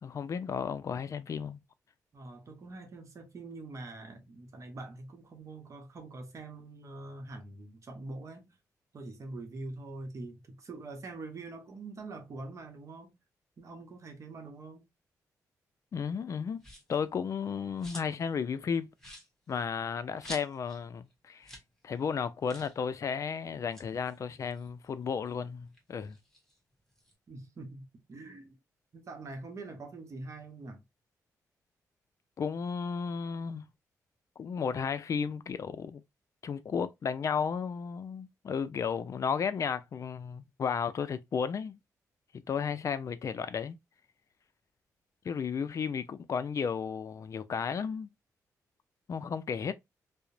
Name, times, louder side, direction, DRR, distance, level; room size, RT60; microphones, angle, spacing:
voice 1, 0.0-1.6 15.9-16.6 16.9-18.9 19.5-21.5 21.8-26.2 32.4-33.7 34.4-36.0 36.4-41.8 42.5-43.8 45.2-48.1 49.1-49.7, left 6 dB, 50° left, 0.4 m, -33 dB
voice 2, 2.1-8.5 8.9-13.1 13.6-14.8 27.3-28.5 28.9-30.8, right 2 dB, 50° right, 0.8 m, -44 dB
sound 1, 16.6-17.0 17.4-18.3 18.6-18.7 19.0-20.8 21.1-21.2 21.4-21.7 22.0-22.1 22.4-22.8 23.5-25.3 25.7-27.2, equal, 5° left, 1.1 m, -49 dB
2.8 x 2.0 x 2.5 m
cardioid pair, 75°, 7 cm